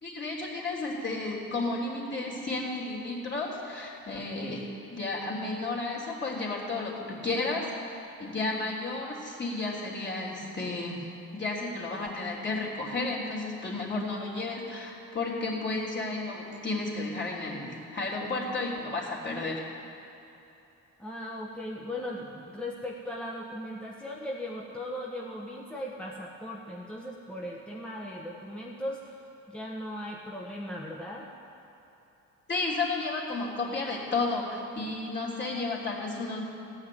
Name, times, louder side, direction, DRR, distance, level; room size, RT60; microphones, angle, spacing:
voice 1, 0.0-11.1 11.3-19.6 32.5-36.4, left 3 dB, 35° left, -4 dB, 3.3 m, -32 dB
voice 2, 21.0-29.0 29.5-31.3, left 1 dB, 5° left, -3 dB, 1.3 m, -38 dB
15.5 x 5.7 x 9.7 m, 3.0 s
cardioid pair, 90°, 30 cm